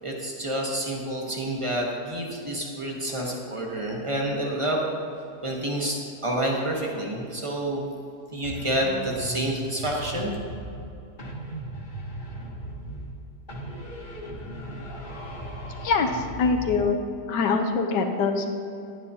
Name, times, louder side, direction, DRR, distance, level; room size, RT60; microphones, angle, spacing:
voice 1, 0.0-4.9 5.4-7.9 8.3-10.3, right 1 dB, 25° right, -1 dB, 0.9 m, -28 dB
sound 1, 8.4-10.9 11.2-13.2 13.5-16.9, right 1 dB, 30° left, 1.1 m, -37 dB
voice 2, 15.8-17.0 17.3-18.5, left 4 dB, 80° left, 5 dB, 1.4 m, -24 dB
10.5 x 9.3 x 2.8 m, 2.7 s
omnidirectional pair, 1.8 m